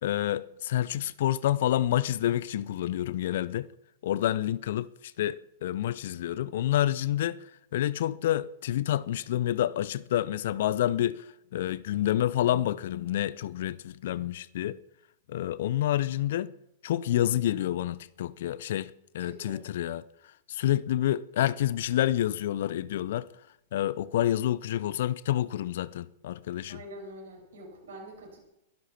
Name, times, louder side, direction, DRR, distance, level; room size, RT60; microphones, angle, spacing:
voice 1, 0.0-3.7 4.0-4.9 5.2-7.4 7.7-11.2 11.5-14.8 15.3-16.5 16.8-20.0 20.5-23.3 23.7-26.8, left 12 dB, 60° left, 0.7 m, -28 dB
voice 2, 19.2-19.7 26.7-28.4, right 1 dB, 65° right, 7.2 m, -45 dB
22.5 x 13.0 x 4.4 m
figure-of-eight pair, 100°, 0 cm